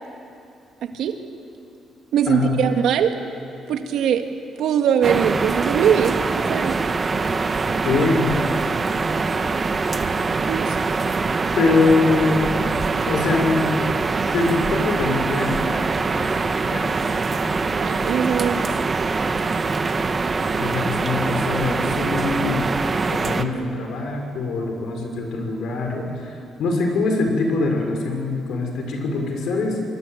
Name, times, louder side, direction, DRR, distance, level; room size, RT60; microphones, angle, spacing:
voice 1, 0.8-1.2 2.1-3.1 3.7-4.2 4.6-6.8 10.5-10.8 17.7-18.9, right 8 dB, 80° right, 6 dB, 2.0 m, -21 dB
voice 2, 2.3-2.6 7.8-8.3 11.5-12.4 13.1-13.7 14.3-15.9 16.1-17.1 20.6-22.8 23.1-29.8, left 3 dB, 75° left, 3 dB, 5.9 m, -23 dB
sound 1, 5.0-23.4, right 4 dB, 35° right, 1.5 m, -23 dB
25.5 x 22.0 x 9.3 m, 2.6 s
cardioid pair, 90°, 0 cm